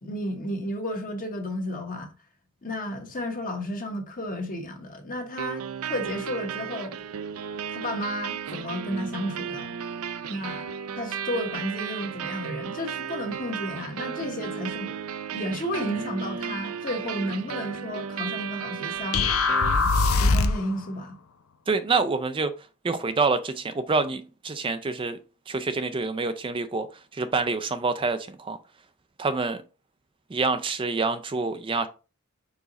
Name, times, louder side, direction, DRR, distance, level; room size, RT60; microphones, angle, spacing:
voice 1, 0.0-2.1 2.6-6.9 7.7-9.7 10.3-10.7 11.0-14.9 15.3-19.3 20.2-21.2, equal, 40° left, 1.3 m, -32 dB
sound 1, 5.4-20.4, right 7 dB, 85° right, 0.5 m, -34 dB
sound 2, 19.1-20.7, left 3 dB, 80° left, 0.7 m, -21 dB
voice 2, 21.7-22.5 22.8-25.2 25.5-26.9 27.1-28.6 29.2-29.6 30.3-31.9, right 4 dB, 25° right, 0.4 m, -26 dB
5.0 x 4.7 x 4.0 m
head